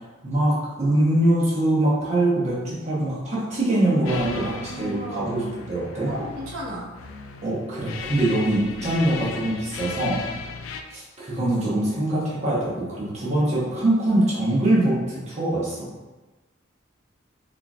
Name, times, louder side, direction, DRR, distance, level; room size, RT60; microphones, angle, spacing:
voice 1, 0.2-6.1 7.4-10.2 10.9-15.9, right 1 dB, 35° right, -7 dB, 1.0 m, -23 dB
sound 1, 4.1-10.8, left 5 dB, 80° left, 0.3 m, -37 dB
voice 2, 4.3-5.5 6.1-6.9, right 1 dB, 85° right, -5 dB, 0.9 m, -34 dB
4.0 x 3.2 x 2.4 m, 1.2 s
head